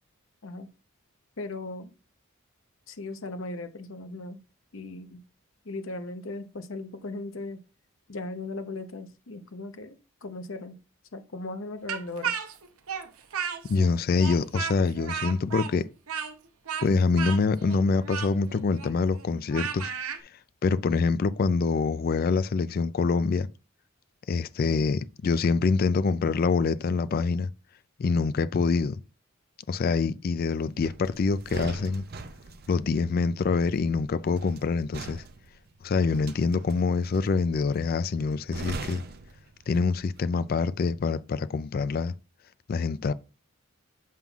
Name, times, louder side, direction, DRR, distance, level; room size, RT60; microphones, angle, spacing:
voice 1, 1.4-1.9 2.9-4.4 4.7-5.2 5.6-7.6 8.1-10.8 11.1-12.3, left 2 dB, 65° left, 0.8 m, -37 dB
Speech, 11.9-13.9 14.2-20.2, right 7 dB, 90° right, 0.7 m, -34 dB
voice 2, 13.7-15.9 16.8-19.9 20.6-23.5 24.3-27.5 28.0-29.0 29.7-32.0 32.7-35.2 35.8-39.0 39.7-42.1 42.7-43.1, left 4 dB, 45° left, 0.3 m, -25 dB
sound 1, 30.8-40.1 40.4-40.7, right 3 dB, 45° right, 0.5 m, -42 dB
7.5 x 5.4 x 2.3 m
head